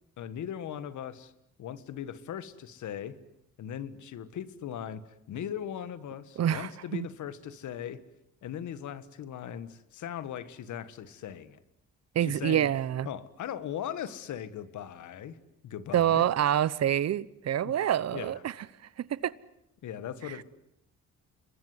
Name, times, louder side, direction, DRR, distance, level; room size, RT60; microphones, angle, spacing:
voice 1, 0.2-1.3 1.6-3.2 3.6-5.0 5.3-8.0 8.4-11.6 12.2-12.7 13.1-15.4 15.6-16.3 17.6-17.8 18.1-18.4 19.8-20.4, left 9 dB, 75° left, 1.8 m, -39 dB
voice 2, 6.4-7.1 12.1-13.1 15.9-18.5 19.0-19.3, right 10 dB, 60° right, 1.0 m, -27 dB
27.0 x 21.5 x 9.7 m
cardioid pair, 90°, 30 cm